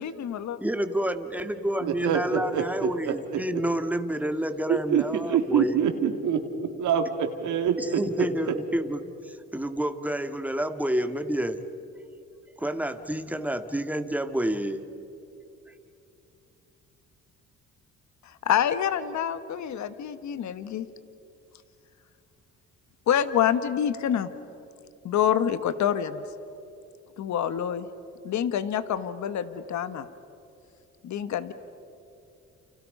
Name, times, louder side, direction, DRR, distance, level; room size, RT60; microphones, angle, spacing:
voice 1, 0.0-0.6 18.2-20.9 23.1-24.3 25.0-26.2 27.2-27.9 28.2-30.1 31.0-31.5, left 9 dB, 70° left, 12 dB, 1.4 m, -27 dB
voice 2, 0.6-5.8 7.8-11.6 12.6-14.8, right 1 dB, 5° right, 7 dB, 1.9 m, -29 dB
voice 3, 1.8-3.4 4.7-8.5, right 7 dB, 80° right, 5 dB, 2.9 m, -26 dB
30.0 x 29.5 x 5.5 m, 2.7 s
cardioid pair, 90°, 30 cm